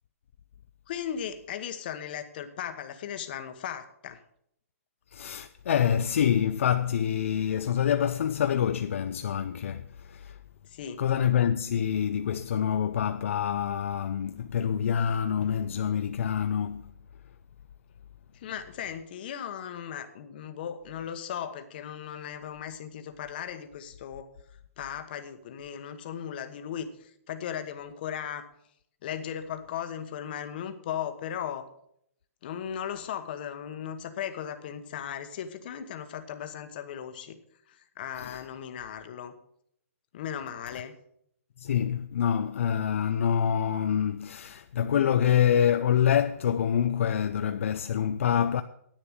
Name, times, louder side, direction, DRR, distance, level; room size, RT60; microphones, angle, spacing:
voice 1, 0.9-4.2 10.6-11.0 18.3-24.3 24.8-28.4 29.0-31.7 32.4-37.4 37.7-39.3 40.1-40.9, left 9 dB, 40° left, 1.1 m, -37 dB
voice 2, 5.1-10.4 11.0-16.9 38.2-38.4 40.7-40.8 41.6-48.6, left 9 dB, 60° left, 0.5 m, -26 dB
10.5 x 8.9 x 6.5 m
hypercardioid pair, 170°, 8 cm